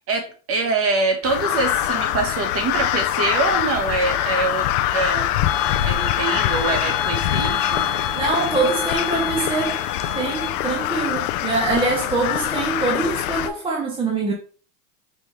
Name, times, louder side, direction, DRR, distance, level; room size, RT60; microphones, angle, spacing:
voice 1, 0.1-4.7 4.9-5.3 5.8-7.9, right 3 dB, 30° right, 0.9 m, -24 dB
Crow, 1.2-13.5, left 13 dB, 70° left, 0.5 m, -24 dB
sound 1, 5.5-10.5, left 5 dB, 40° left, 0.9 m, -31 dB
voice 2, 8.1-9.8 10.2-14.3, right 3 dB, 10° right, 0.5 m, -24 dB
5.4 x 2.2 x 3.0 m
supercardioid pair, 120°, 46 cm